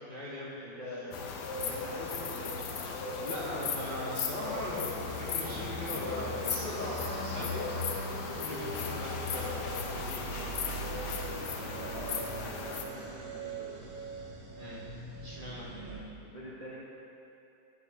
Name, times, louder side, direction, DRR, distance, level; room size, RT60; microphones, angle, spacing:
voice 1, 0.1-0.7 3.0-7.7 8.0-10.5 14.5-14.8 15.2-15.7, equal, 45° left, -8 dB, 0.6 m, -40 dB
voice 2, 0.6-1.1 1.6-2.6 8.6-8.8 11.5-13.8 15.8-15.9 16.2-16.8, equal, 40° right, -7 dB, 0.5 m, -45 dB
sound 1, 1.1-12.9, left 5 dB, 70° left, 1.1 m, -36 dB
sound 2, 4.4-16.0, right 3 dB, 85° right, 1.9 m, -42 dB
8.9 x 7.9 x 2.8 m, 2.8 s
omnidirectional pair, 2.0 m